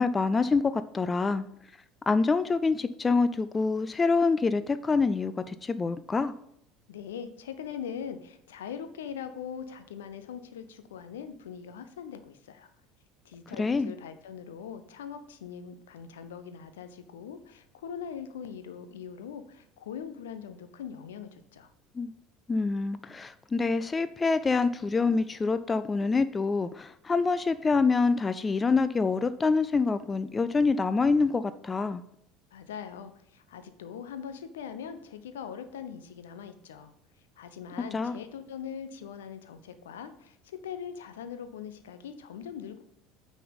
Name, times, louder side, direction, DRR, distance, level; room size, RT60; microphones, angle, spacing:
voice 1, 0.0-1.4 2.1-6.3 13.6-13.9 22.0-22.1 22.5-32.0 37.9-38.2, left 4 dB, 20° left, 13 dB, 0.4 m, -26 dB
voice 2, 6.9-12.7 13.2-21.7 32.5-36.9 37.4-42.8, left 7 dB, 70° left, 10 dB, 0.7 m, -41 dB
9.1 x 4.2 x 5.3 m, 0.73 s
figure-of-eight pair, 65°, 0 cm